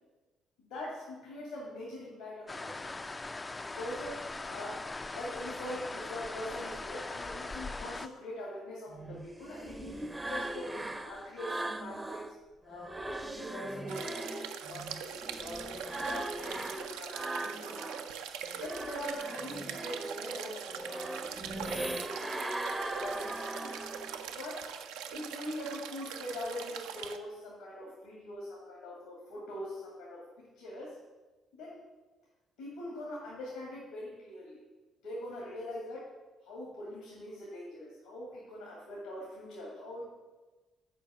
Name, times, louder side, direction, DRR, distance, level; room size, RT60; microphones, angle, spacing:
voice 1, 0.7-2.9 3.7-4.2 4.4-4.8 5.1-10.7 11.0-12.3 12.6-17.7 18.5-21.2 21.6-23.8 24.3-24.7 25.1-31.0 31.5-31.8 32.6-34.6 35.0-36.0 36.4-40.0, left 1 dB, 80° left, -5 dB, 2.2 m, -42 dB
sound 1, 2.5-8.1, left 3 dB, 25° left, 0.4 m, -40 dB
sound 2, 8.9-12.3 12.7-18.1 18.4-24.3, right 2 dB, 15° right, 0.6 m, -40 dB
sound 3, 13.9-27.2, right 8 dB, 75° right, 0.5 m, -42 dB
6.8 x 4.8 x 6.7 m, 1.2 s
hypercardioid pair, 50°, 0 cm